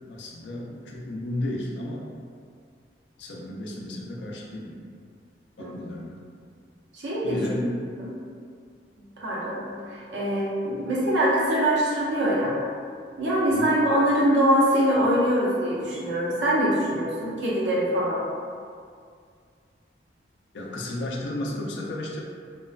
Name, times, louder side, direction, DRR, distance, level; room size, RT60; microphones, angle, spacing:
voice 1, 0.1-2.1 3.2-4.8 5.6-6.2 7.2-7.8 13.5-13.7 20.5-22.2, left 1 dB, 70° left, -2 dB, 0.4 m, -33 dB
voice 2, 6.9-7.4 8.0-8.1 9.0-12.5 13.2-18.2, equal, 85° right, -6 dB, 0.7 m, -23 dB
2.9 x 2.1 x 2.3 m, 2.2 s
head